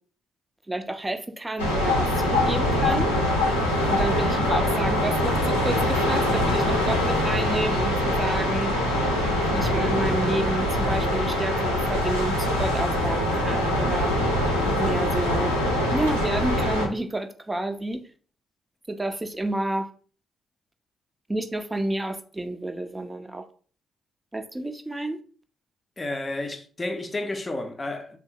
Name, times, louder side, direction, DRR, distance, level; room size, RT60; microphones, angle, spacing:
voice 1, 0.7-3.1 3.9-8.7 9.5-14.2 14.8-15.5 15.9-18.0 18.9-19.9 21.3-23.4 24.3-25.2, right 1 dB, 15° right, 0.5 m, -30 dB
sound 1, 1.6-16.9, left 1 dB, 90° left, 0.6 m, -23 dB
voice 2, 26.0-28.2, left 2 dB, 25° left, 0.6 m, -31 dB
3.4 x 2.0 x 4.2 m
figure-of-eight pair, 40°, 0 cm